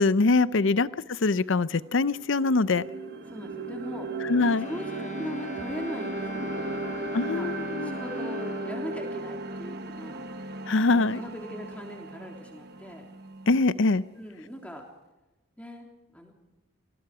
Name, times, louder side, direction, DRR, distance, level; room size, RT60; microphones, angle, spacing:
voice 1, 0.0-2.8 4.2-4.7 7.1-7.9 10.7-11.2 13.5-14.0, left 3 dB, 65° left, 16 dB, 0.6 m, -23 dB
sound 1, 1.4-1.5 1.9-13.9, right 2 dB, 50° right, 1.3 m, -36 dB
voice 2, 3.2-4.1 4.6-7.0 7.3-7.5 7.8-10.2 10.9-13.1 14.2-14.8 15.6-15.9 16.1-16.3, equal, 5° left, 1 dB, 3.5 m, -40 dB
sound 2, 4.2-9.0, left 2 dB, 35° left, 1.4 m, -42 dB
27.0 x 20.0 x 4.9 m, 1.0 s
head